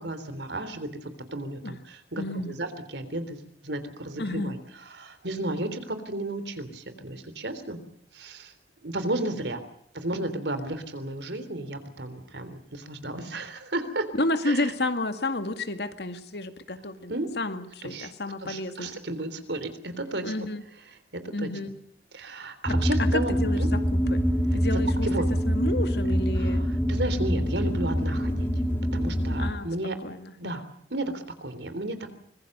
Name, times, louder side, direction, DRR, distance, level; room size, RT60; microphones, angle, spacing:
voice 1, 0.0-3.4 3.6-7.8 8.1-8.5 8.8-9.6 9.9-14.1 14.4-14.7 17.1-17.3 17.8-18.1 18.4-20.5 20.9-21.5 22.1-23.7 24.5-24.6 25.0-25.3 26.4-28.5 28.9-30.0 30.4-30.6 30.9-32.1, right 1 dB, 75° right, 10 dB, 3.4 m, -33 dB
voice 2, 2.2-2.5 4.2-4.6 14.1-18.9 20.2-20.6 21.3-21.7 22.7-22.8 23.1-24.2 24.5-25.1 25.5-26.6 29.4-29.7 30.0-30.5, left 2 dB, 65° left, 8 dB, 2.1 m, -31 dB
sound 1, 22.7-29.5, equal, 15° left, 2.9 m, -25 dB
24.5 x 21.5 x 6.7 m, 0.69 s
head